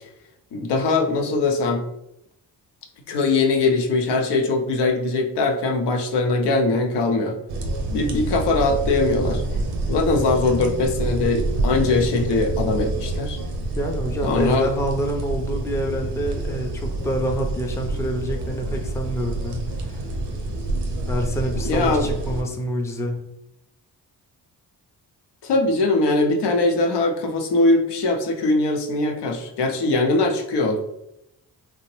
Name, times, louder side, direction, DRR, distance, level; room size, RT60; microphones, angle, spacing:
voice 1, 0.5-1.8 3.1-7.3 7.9-9.4 9.9-13.4 14.2-14.7 21.6-22.1 25.4-30.9, left 3 dB, 75° left, 3 dB, 0.6 m, -21 dB
sound 1, 7.5-22.4, right 2 dB, 75° right, 0.6 m, -27 dB
voice 2, 13.8-19.6 19.9-20.0 21.1-23.2, right 1 dB, 5° left, 2 dB, 0.4 m, -27 dB
2.9 x 2.1 x 2.9 m, 0.81 s
cardioid pair, 55°, 42 cm